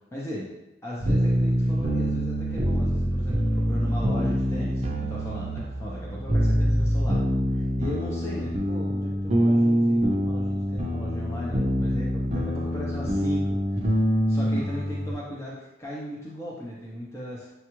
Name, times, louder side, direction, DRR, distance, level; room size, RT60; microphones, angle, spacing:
voice 1, 0.1-0.5 0.8-7.2 7.5-13.9 14.3-17.5, equal, 15° left, -6 dB, 0.6 m, -37 dB
sound 1, 1.0-15.1, equal, 35° right, 0.5 m, -25 dB
6.7 x 2.3 x 3.0 m, 0.99 s
head